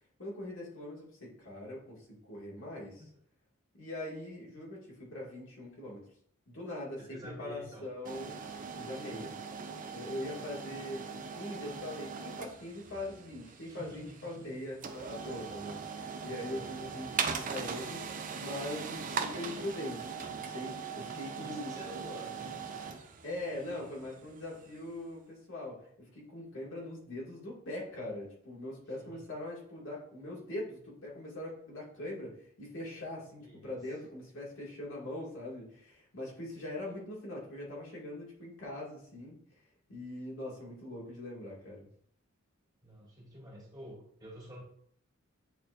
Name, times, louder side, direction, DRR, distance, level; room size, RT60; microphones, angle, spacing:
voice 1, 0.2-3.0 3.7-6.0 6.5-8.4 8.8-9.3 9.9-11.1 11.4-21.8 23.2-39.4 39.9-41.9, left 1 dB, 60° left, -4 dB, 2.1 m, -42 dB
voice 2, 7.0-7.9 8.9-9.4 13.6-14.6 16.2-16.7 21.4-22.6 23.5-23.8 29.0-29.2 33.4-33.8 42.8-44.6, equal, 20° right, -5 dB, 2.2 m, -49 dB
sound 1, 8.0-24.9, right 6 dB, 40° right, 0.5 m, -40 dB
9.1 x 4.3 x 2.5 m, 0.64 s
head